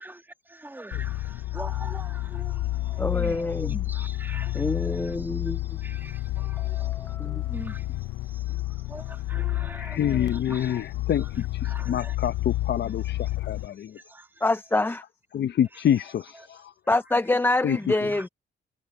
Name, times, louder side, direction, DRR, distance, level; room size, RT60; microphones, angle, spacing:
voice 1, 0.0-11.3 11.6-12.2 13.2-13.5 13.8-14.4 16.3-16.5 17.8-18.3, right 1 dB, 10° right, 2.4 m, -44 dB
sound 1, 0.9-13.7, left 16 dB, 85° left, 0.7 m, -30 dB
voice 2, 3.0-3.9 4.5-5.6 6.6-7.5 14.4-15.0 16.9-18.3, left 2 dB, 10° left, 0.6 m, -26 dB
voice 3, 9.8-11.5 11.9-14.0 15.3-16.7 17.6-17.8, left 10 dB, 60° left, 0.9 m, -27 dB
cardioid pair, 90°, 20 cm